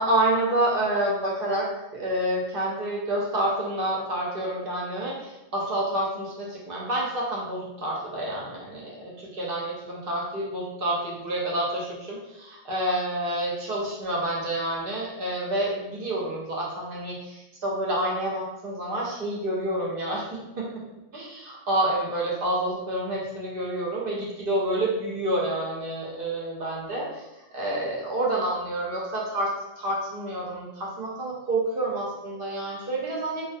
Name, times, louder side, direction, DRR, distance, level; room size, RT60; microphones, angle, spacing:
voice 1, 0.0-1.7 1.9-20.8 21.1-27.3 27.5-33.4, right 1 dB, 55° right, -3 dB, 0.6 m, -28 dB
2.3 x 2.3 x 2.5 m, 0.98 s
omnidirectional pair, 1.3 m